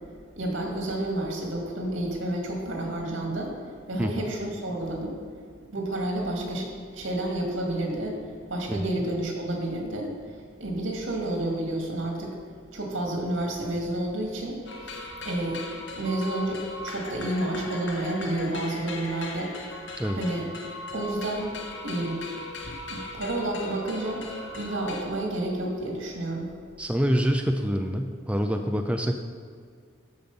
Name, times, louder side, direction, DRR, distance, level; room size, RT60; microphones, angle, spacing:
voice 1, 0.4-3.5 3.9-5.2 5.7-8.2 8.5-10.1 10.6-12.4 12.7-14.6 14.8-15.0 15.2-15.6 15.9-19.5 20.1-20.5 20.9-21.5 21.8-22.2 22.6-24.2 24.5-26.5, right 1 dB, 85° right, 0 dB, 2.2 m, -30 dB
sound 1, 14.7-25.0, left 1 dB, 65° left, 1.5 m, -38 dB
voice 2, 26.8-29.2, equal, 5° right, 4 dB, 0.4 m, -26 dB
12.5 x 5.2 x 5.4 m, 2.1 s
head